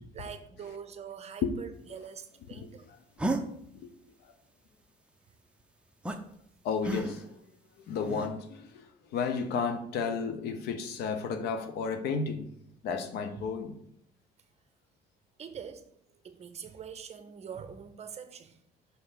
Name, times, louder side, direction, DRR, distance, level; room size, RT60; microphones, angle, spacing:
voice 1, 0.1-2.9 3.4-3.5 13.4-13.5 15.4-15.9 16.2-18.6, right 7 dB, 40° right, 0.7 m, -44 dB
sound 1, 3.2-3.4 6.0-6.2 6.8-7.3 8.0-8.3, right 2 dB, 5° right, 0.6 m, -32 dB
voice 2, 6.6-7.4 7.8-8.9 9.1-12.5 12.8-13.8, left 5 dB, 75° left, 0.9 m, -32 dB
5.9 x 3.4 x 5.8 m
cardioid pair, 110°, 17 cm